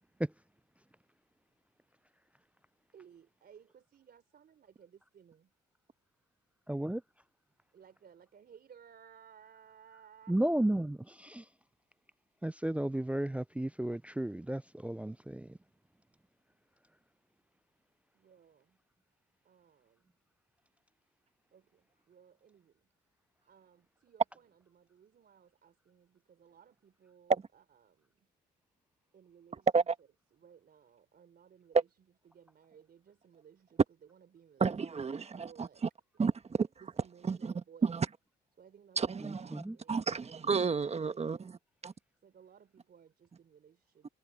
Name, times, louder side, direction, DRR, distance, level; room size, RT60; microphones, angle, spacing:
voice 1, 2.9-5.5 7.7-10.4 18.1-18.8 19.4-20.1 21.5-22.9 23.5-28.3 29.1-29.7 30.3-31.9 32.2-34.7 35.1-35.8 36.8-37.9 38.6-40.1 40.9-41.6 42.2-44.1, right 8 dB, 55° right, 3.8 m, -59 dB
voice 2, 6.7-7.0 10.3-11.4 12.4-15.6 39.2-39.8, right 1 dB, 5° right, 0.3 m, -33 dB
voice 3, 34.6-35.7 36.2-36.7 37.2-37.5 37.8-38.1 39.0-39.6 39.9-41.6 41.8-41.9, right 5 dB, 30° right, 1.3 m, -31 dB
cardioid pair, 90°, 20 cm